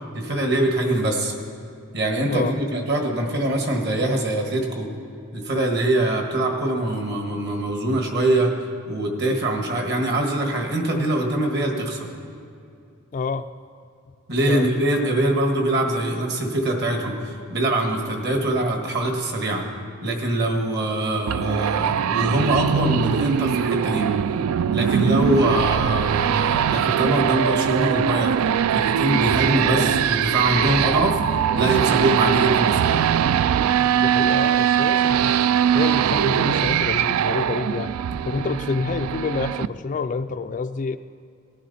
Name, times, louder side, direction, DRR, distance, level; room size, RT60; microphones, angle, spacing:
voice 1, 0.1-1.3 1.9-4.9 5.3-8.5 8.9-12.1 14.3-19.7 20.0-24.1 24.7-28.3 28.7-31.2 31.5-33.0, right 1 dB, 50° right, 2 dB, 1.7 m, -23 dB
voice 2, 13.1-13.5 14.5-15.1 33.9-35.4 35.7-37.9 38.2-41.0, left 4 dB, 35° left, 10 dB, 0.3 m, -28 dB
sound 1, 21.3-39.7, right 9 dB, 75° right, 0.3 m, -21 dB
18.5 x 10.5 x 4.2 m, 2.5 s
head